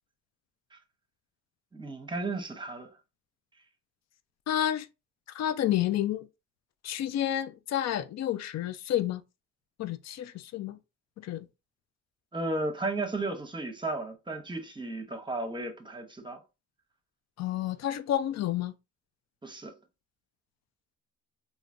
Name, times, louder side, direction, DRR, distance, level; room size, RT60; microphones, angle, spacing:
voice 1, 1.7-2.9 12.3-16.4 19.4-19.7, right 2 dB, 15° right, 0.8 m, -34 dB
voice 2, 4.5-4.9 5.3-6.3 6.8-9.2 9.8-10.8 11.2-11.5 17.4-18.7, left 11 dB, 60° left, 0.5 m, -30 dB
3.2 x 2.6 x 2.5 m
cardioid pair, 90°, 30 cm